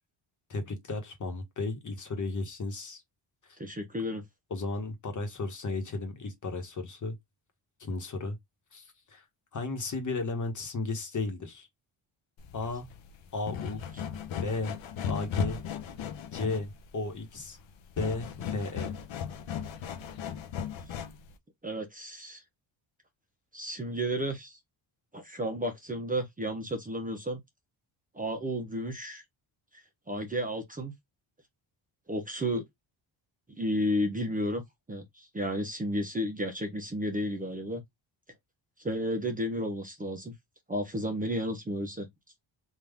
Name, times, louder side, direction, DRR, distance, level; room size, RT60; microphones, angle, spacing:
voice 1, 0.5-3.0 4.5-7.2 7.8-8.4 8.7-9.2 9.5-11.7 12.5-12.9 13.3-13.8 14.4-14.7 15.1-15.6 16.3-17.6 18.0-18.9, left 3 dB, 40° left, 1.4 m, -34 dB
voice 2, 3.6-4.2 21.6-22.4 23.5-24.6 25.1-27.4 28.1-29.2 30.1-30.9 32.1-32.6 33.5-34.6 34.9-37.8 38.8-40.3 40.7-42.1, equal, 20° right, 0.9 m, -32 dB
sound 1, 12.4-21.3, left 7 dB, 75° left, 0.9 m, -36 dB
3.8 x 2.7 x 3.5 m
cardioid pair, 125°, 47 cm